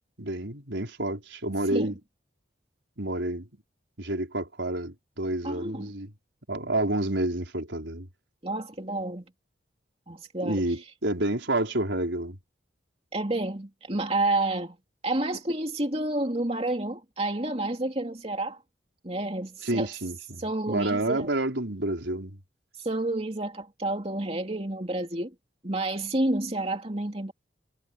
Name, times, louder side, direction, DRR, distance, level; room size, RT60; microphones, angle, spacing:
voice 1, 0.2-1.9 3.0-3.5 4.0-6.1 6.5-8.1 10.4-12.4 19.6-22.4, right 1 dB, 75° right, 4.6 m, -29 dB
voice 2, 5.4-5.9 8.4-9.2 10.1-10.6 13.1-14.8 15.0-18.6 19.0-19.9 20.4-21.3 22.8-25.3 25.6-27.3, right 2 dB, 30° right, 2.8 m, -29 dB
head